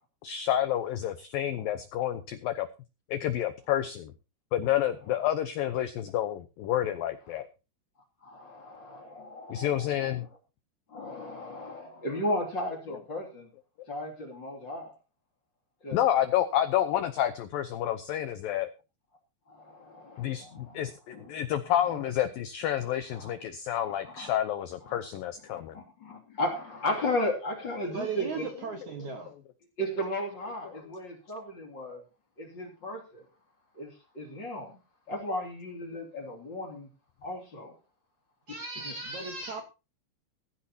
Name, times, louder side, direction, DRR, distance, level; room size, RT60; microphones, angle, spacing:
voice 1, 0.2-2.7 3.1-4.1 4.5-7.5 9.5-10.2 15.9-18.7 20.2-25.8, left 11 dB, 80° left, 10 dB, 2.1 m, -29 dB
voice 2, 8.2-10.3 10.9-13.5 13.9-14.9 15.8-16.0 19.5-20.8 21.1-22.0 23.1-23.3 23.7-24.4 24.8-25.0 25.5-28.4 29.8-32.0 32.4-33.2 33.7-34.8 35.1-36.9 37.2-37.7 38.8-38.9, left 1 dB, 30° left, 2 dB, 2.8 m, -35 dB
voice 3, 27.9-29.3 38.5-39.6, right 4 dB, 60° right, 4 dB, 2.1 m, -36 dB
15.5 x 15.0 x 2.9 m, 0.31 s
omnidirectional pair, 5.2 m